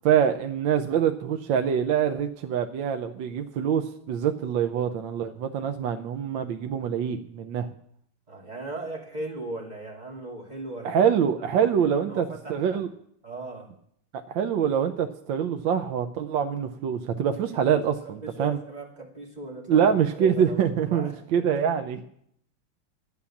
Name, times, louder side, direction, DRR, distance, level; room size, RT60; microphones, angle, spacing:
voice 1, 0.0-7.7 10.8-12.9 14.3-18.6 19.7-22.0, right 8 dB, 70° right, 6 dB, 1.4 m, -25 dB
voice 2, 8.3-11.1 11.5-12.8 13.2-13.7 17.5-17.8 18.2-21.6, right 2 dB, 20° right, -1 dB, 2.5 m, -38 dB
13.0 x 9.9 x 7.1 m, 0.70 s
omnidirectional pair, 2.3 m